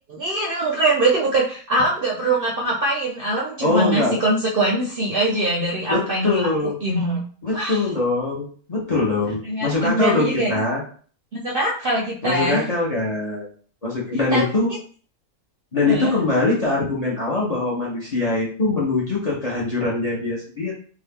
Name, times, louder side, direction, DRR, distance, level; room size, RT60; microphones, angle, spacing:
voice 1, 0.1-7.2 7.5-7.8 9.4-10.6 11.3-12.7 14.3-14.4 15.9-16.1, right 2 dB, 55° right, -3 dB, 0.6 m, -22 dB
voice 2, 3.6-4.2 5.9-6.8 7.4-10.8 12.2-13.5 13.8-14.7 15.7-20.7, left 3 dB, 35° left, -4 dB, 0.7 m, -22 dB
2.7 x 2.4 x 3.5 m, 0.44 s
omnidirectional pair, 1.5 m